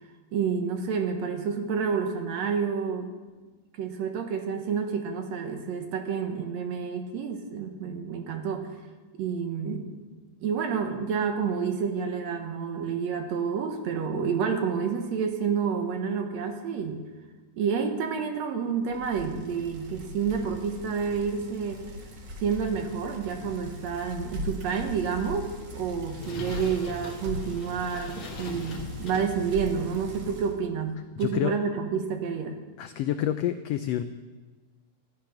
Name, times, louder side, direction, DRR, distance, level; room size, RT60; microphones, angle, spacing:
voice 1, 0.3-3.1 3.8-8.7 9.2-10.0 10.4-17.0 17.6-21.8 22.4-32.6, right 6 dB, 70° right, 5 dB, 2.2 m, -29 dB
Bicycle, 18.9-30.6, left 1 dB, 45° right, 1.7 m, -40 dB
sound 1, 25.6-30.5, left 4 dB, 50° left, 1.9 m, -42 dB
voice 2, 31.2-31.5 32.8-34.0, left 11 dB, 85° left, 10 dB, 1.4 m, -28 dB
13.5 x 11.0 x 5.8 m, 1.3 s
omnidirectional pair, 3.4 m